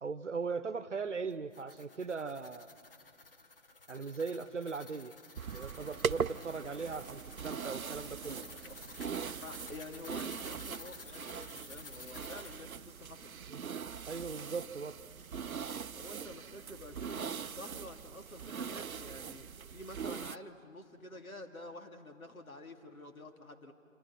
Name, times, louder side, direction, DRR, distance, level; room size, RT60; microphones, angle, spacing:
voice 1, 0.0-2.7 3.9-5.1 5.5-8.4 13.5-13.6 14.1-15.0, right 4 dB, 60° right, 15 dB, 1.0 m, -39 dB
sound 1, 1.3-12.7, left 3 dB, 40° left, 1.4 m, -53 dB
sound 2, 5.4-20.4, right 7 dB, 85° right, 0.6 m, -41 dB
voice 2, 8.1-8.8 9.4-13.3 15.9-23.7, left 1 dB, 85° left, 4 dB, 2.6 m, -49 dB
27.0 x 26.5 x 5.8 m, 2.2 s
figure-of-eight pair, 160°, 41 cm